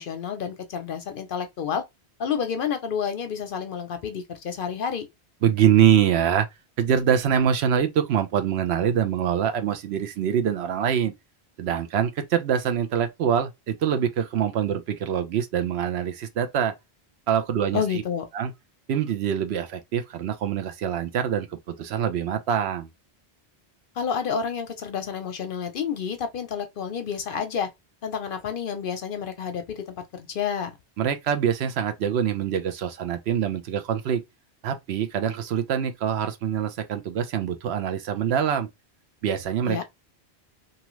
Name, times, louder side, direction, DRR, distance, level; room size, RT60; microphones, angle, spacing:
voice 1, 0.0-1.8 2.2-5.1 17.7-18.3 24.0-27.7 28.0-30.7 39.6-39.8, left 7 dB, 60° left, 0.7 m, -29 dB
voice 2, 5.4-6.5 6.8-11.1 11.6-16.7 17.3-18.0 18.3-18.5 18.9-21.5 21.8-22.9 31.0-34.2 34.6-38.7 39.2-39.8, right 9 dB, 75° right, 0.9 m, -24 dB
2.7 x 2.4 x 3.0 m
omnidirectional pair, 1.1 m